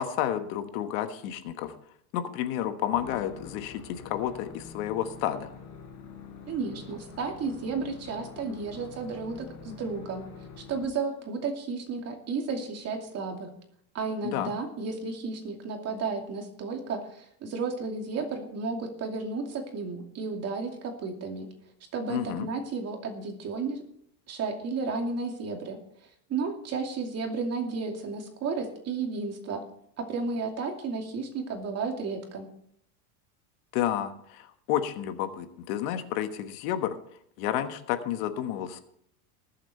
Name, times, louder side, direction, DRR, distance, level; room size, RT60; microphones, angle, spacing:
voice 1, 0.0-1.7 2.1-5.5 14.2-14.5 22.1-22.5 33.7-37.0 37.4-38.8, left 11 dB, 65° left, 9 dB, 1.4 m, -30 dB
sound 1, 2.9-10.9, left 5 dB, 45° left, 3.7 m, -46 dB
voice 2, 6.5-10.3 10.6-13.5 13.9-21.5 21.9-23.8 24.3-25.8 26.3-29.6 30.0-32.5, right 4 dB, 35° right, 3 dB, 2.5 m, -33 dB
19.5 x 7.5 x 4.4 m, 0.70 s
supercardioid pair, 140°, 45 cm